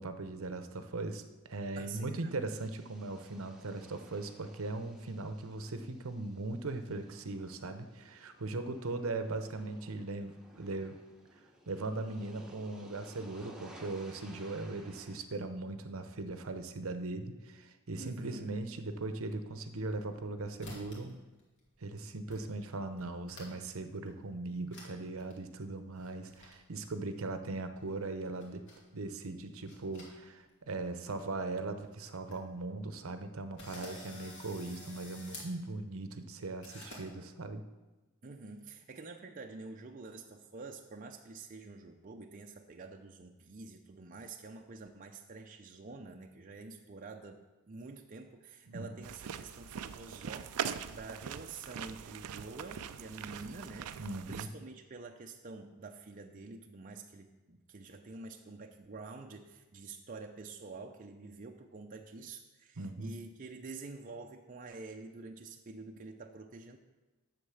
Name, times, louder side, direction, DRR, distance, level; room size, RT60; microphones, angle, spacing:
voice 1, 0.0-11.0 11.7-21.2 21.8-28.6 28.9-37.6 48.7-49.0 54.0-54.5 62.8-63.2, right 2 dB, 65° right, 9 dB, 0.8 m, -39 dB
voice 2, 1.8-2.3 18.0-18.6 38.2-53.9 54.3-66.8, right 3 dB, 35° right, 3 dB, 0.6 m, -48 dB
sound 1, 2.5-15.2, equal, 5° right, 1.1 m, -57 dB
sound 2, 19.7-20.3 20.6-21.1 21.4-21.9 22.3-22.4 22.7-23.7 24.1-24.2 24.7-24.9 25.2-25.3 25.9-26.5 27.8-28.8 29.4-30.5 30.8-30.9 31.5-31.6 31.8-31.9 32.1-32.4 32.9-33.0 33.6-35.5 36.6-37.0, left 1 dB, 55° left, 2.6 m, -50 dB
sound 3, 49.0-54.5, right 8 dB, 85° right, 0.4 m, -42 dB
8.3 x 6.6 x 7.1 m, 1.1 s
head